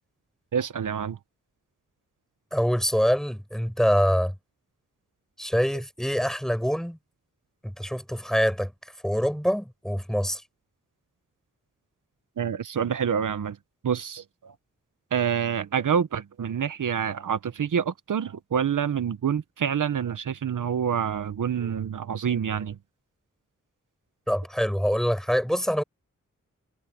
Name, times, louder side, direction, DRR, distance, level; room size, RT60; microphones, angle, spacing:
voice 1, 0.5-1.2 12.4-13.6 13.8-14.5 15.1-22.8, right 8 dB, 80° right, 0.9 m, -27 dB
voice 2, 2.5-4.3 5.4-7.0 7.6-8.7 9.0-10.4 24.3-25.8, equal, ahead, 5.9 m, -25 dB
wide cardioid pair, 65°, 31 cm